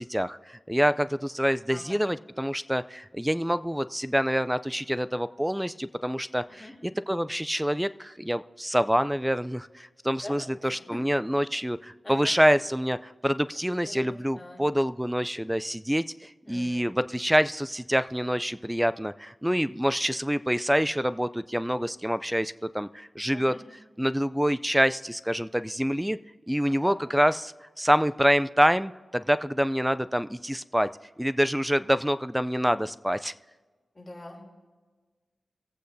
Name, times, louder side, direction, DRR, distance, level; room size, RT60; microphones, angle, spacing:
voice 1, 0.0-6.7 7.1-23.5 24.0-26.2 26.5-30.9 31.2-33.3, equal, 5° right, 14 dB, 0.3 m, -26 dB
voice 2, 14.3-14.6 16.4-16.8 23.3-23.6 26.7-27.0 33.9-34.5, left 2 dB, 25° left, 0 dB, 3.1 m, -44 dB
23.5 x 8.3 x 2.7 m, 1.4 s
cardioid pair, 55°, 0 cm